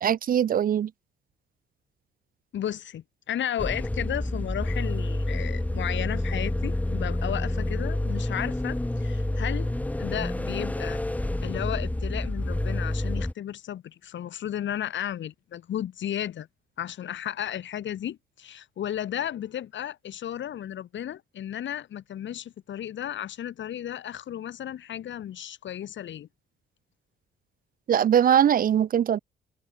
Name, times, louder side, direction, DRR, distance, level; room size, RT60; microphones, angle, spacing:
voice 1, 0.0-0.9 27.9-29.2, right 9 dB, 45° right, 0.5 m, -21 dB
voice 2, 2.5-9.7 10.0-11.0 11.4-16.5 16.8-26.3, left 10 dB, 70° left, 6.4 m, -34 dB
sound 1, 3.6-13.3, left 1 dB, 5° left, 1.1 m, -28 dB
cardioid pair, 90°, 20 cm